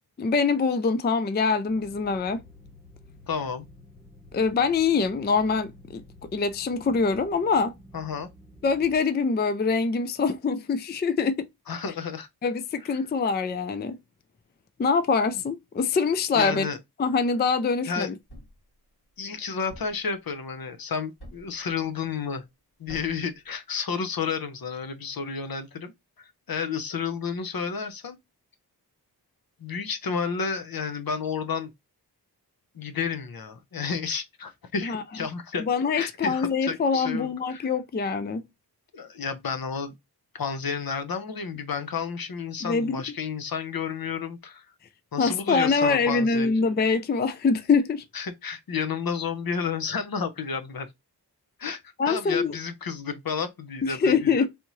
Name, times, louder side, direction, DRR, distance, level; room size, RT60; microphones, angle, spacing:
voice 1, 0.2-2.4 4.3-6.0 6.3-7.7 8.6-11.5 12.4-14.0 14.8-16.7 17.0-18.1 34.8-35.0 35.6-38.4 42.6-43.0 45.2-48.0 52.0-52.6 53.8-54.5, left 5 dB, 25° left, 0.4 m, -24 dB
sound 1, 1.7-9.0, left 1 dB, 10° left, 0.9 m, -51 dB
voice 2, 3.3-3.6 7.9-8.3 11.7-12.3 12.9-13.0 16.3-16.8 17.9-18.1 19.2-22.4 22.8-25.9 26.2-28.2 29.6-31.7 32.7-35.7 35.9-37.7 38.9-39.9 40.3-44.6 45.1-46.5 48.1-50.9 51.6-51.8 52.1-54.5, left 6 dB, 60° left, 0.7 m, -31 dB
Thump thud, 18.3-18.7 19.7-20.1 21.2-21.6 22.9-23.3, equal, 75° left, 2.1 m, -46 dB
3.4 x 2.7 x 3.0 m
wide cardioid pair, 85°, 39 cm